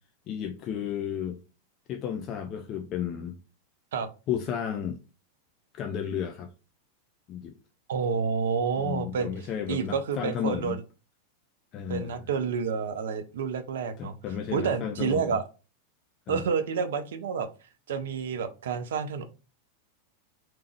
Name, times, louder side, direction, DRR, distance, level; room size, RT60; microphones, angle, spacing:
voice 1, 0.3-1.4 1.9-3.4 4.3-5.0 5.7-6.5 7.3-7.5 8.8-10.8 11.7-12.2 14.0-15.4 16.3-16.4, left 8 dB, 35° left, 0.5 m, -33 dB
voice 2, 7.9-9.3 9.7-10.8 11.9-14.1 14.5-15.4 16.3-17.5 17.9-19.3, right 6 dB, 60° right, 0.5 m, -29 dB
3.4 x 2.9 x 3.4 m
figure-of-eight pair, 90°, 0 cm